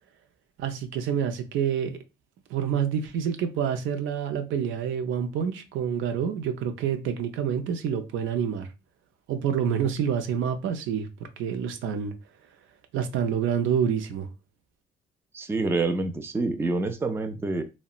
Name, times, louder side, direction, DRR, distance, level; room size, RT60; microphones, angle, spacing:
voice 1, 0.6-1.9 2.5-8.7 9.3-12.1 12.9-14.3, right 8 dB, 80° right, 0.5 m, -27 dB
voice 2, 15.3-17.6, right 3 dB, 10° right, 0.3 m, -27 dB
2.8 x 2.1 x 2.3 m
cardioid pair, 90°, 20 cm